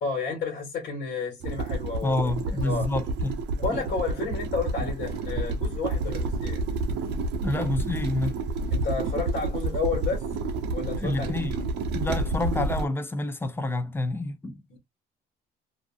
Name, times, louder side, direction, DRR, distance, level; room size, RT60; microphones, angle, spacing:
voice 1, 0.0-2.3 2.6-2.9 3.6-6.6 8.7-10.3 10.7-11.3 14.7-14.8, left 4 dB, 70° left, 1.3 m, -31 dB
sound 1, 1.4-12.9, right 2 dB, 85° right, 0.5 m, -29 dB
voice 2, 2.0-3.4 3.7-3.8 7.4-8.4 11.0-14.6, left 2 dB, 15° left, 0.5 m, -28 dB
2.6 x 2.5 x 2.3 m
cardioid pair, 110°, 17 cm